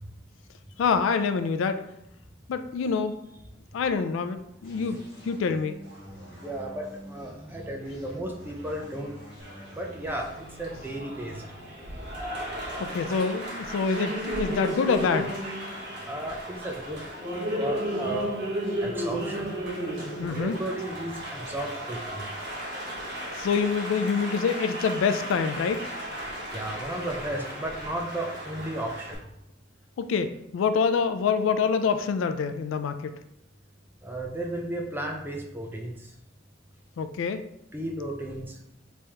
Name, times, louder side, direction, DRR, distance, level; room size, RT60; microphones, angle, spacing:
voice 1, 0.8-1.8 2.5-3.2 3.7-5.0 5.2-5.8 12.8-15.3 20.2-20.6 23.3-25.8 30.0-33.1 37.0-37.4, left 5 dB, 75° left, 10 dB, 0.3 m, -26 dB
sound 1, 4.6-14.1, equal, 55° left, 1.5 m, -48 dB
voice 2, 6.4-9.1 9.7-10.3 10.6-11.4 16.1-17.0 17.6-18.3 18.8-19.5 20.3-22.2 26.5-29.2 34.0-35.9 37.7-38.6, right 1 dB, 10° right, 0 dB, 0.4 m, -34 dB
Applause, 9.4-29.2, equal, 55° right, 1.0 m, -34 dB
3.4 x 3.1 x 2.8 m, 0.79 s
head